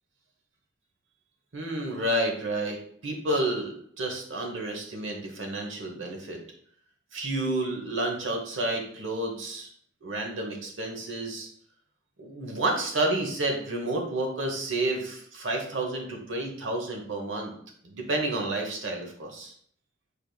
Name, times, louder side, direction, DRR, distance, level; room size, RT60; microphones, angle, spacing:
voice 1, 1.5-2.8 3.0-6.4 7.1-9.7 10.0-11.5 12.2-17.5 17.8-19.5, right 2 dB, 85° right, 1 dB, 0.9 m, -30 dB
4.8 x 3.4 x 2.3 m, 0.64 s
head